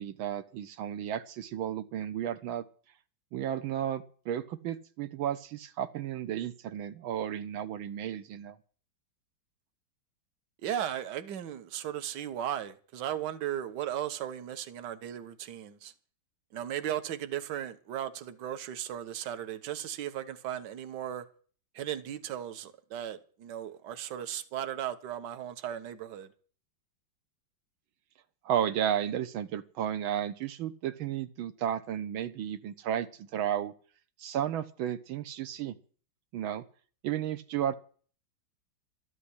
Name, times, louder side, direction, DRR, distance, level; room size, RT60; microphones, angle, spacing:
voice 1, 0.0-2.6 3.3-8.6 28.4-33.7 34.2-35.7 36.3-36.6 37.0-37.7, right 10 dB, 85° right, 1.6 m, -33 dB
voice 2, 10.6-15.9 16.5-21.2 21.7-26.3, right 11 dB, 65° right, 1.6 m, -36 dB
13.0 x 7.5 x 9.8 m
omnidirectional pair, 2.2 m